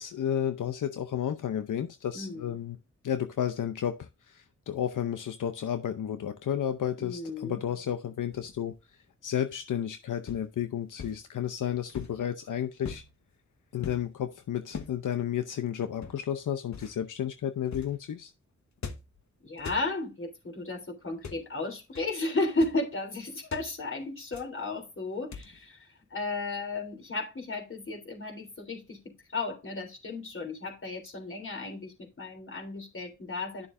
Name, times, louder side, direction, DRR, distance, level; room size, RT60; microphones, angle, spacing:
voice 1, 0.0-2.8 3.0-8.7 9.2-13.0 13.7-18.3, left 9 dB, 85° left, 0.7 m, -32 dB
voice 2, 2.1-2.6 7.0-7.6 19.4-29.0 29.3-33.7, left 2 dB, 45° left, 3.3 m, -34 dB
sound 1, 8.3-8.7 10.3-10.5 11.0-11.2 11.9-12.3 12.8-13.2 13.8-14.1 14.7-15.0 16.0-16.3 16.7-17.0 17.7-18.0 18.8-19.2 19.6-19.9 21.1-21.5 22.0-22.1 22.4-22.8 23.5-23.7 24.3-24.6 25.3-25.6, left 6 dB, 65° left, 1.3 m, -42 dB
11.0 x 6.9 x 2.6 m
cardioid pair, 75°, 31 cm